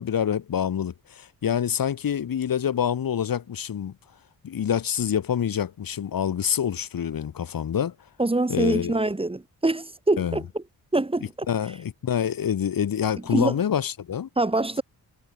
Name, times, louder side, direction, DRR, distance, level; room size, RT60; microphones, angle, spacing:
voice 1, 0.0-3.9 4.4-7.9 8.5-9.0 10.2-10.4 11.5-14.3, left 8 dB, 65° left, 4.5 m, -26 dB
voice 2, 8.2-10.6 10.9-11.5 13.3-13.5 14.4-14.8, right 2 dB, 15° right, 3.7 m, -24 dB
wide cardioid pair, 140°, 37 cm